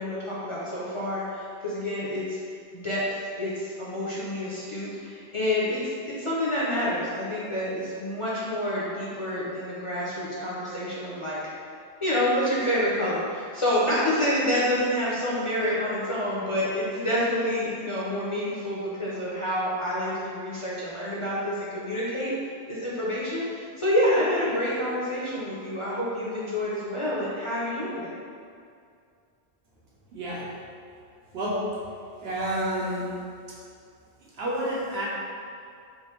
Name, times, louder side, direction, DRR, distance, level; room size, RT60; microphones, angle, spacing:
voice 1, 0.0-2.4 2.7-11.4 12.0-22.3 22.7-28.2, left 1 dB, 35° left, -8 dB, 0.6 m, -28 dB
voice 2, 30.1-30.5 31.3-31.7 32.2-33.2 33.5-33.6 34.3-35.1, right 1 dB, 70° right, -5 dB, 1.0 m, -29 dB
3.7 x 2.6 x 4.3 m, 2.4 s
omnidirectional pair, 1.1 m